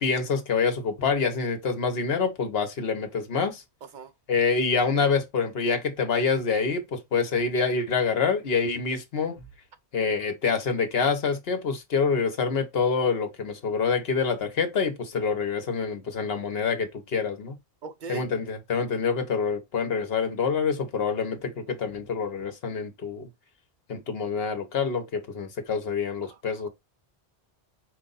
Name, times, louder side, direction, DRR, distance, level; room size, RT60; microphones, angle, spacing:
voice 1, 0.0-3.6 4.3-9.4 9.9-17.5 18.1-23.3 23.9-26.7, left 5 dB, 65° left, 1.2 m, -26 dB
voice 2, 17.8-18.3 26.2-26.4, right 6 dB, 50° right, 0.7 m, -39 dB
4.7 x 2.5 x 3.9 m
omnidirectional pair, 1.1 m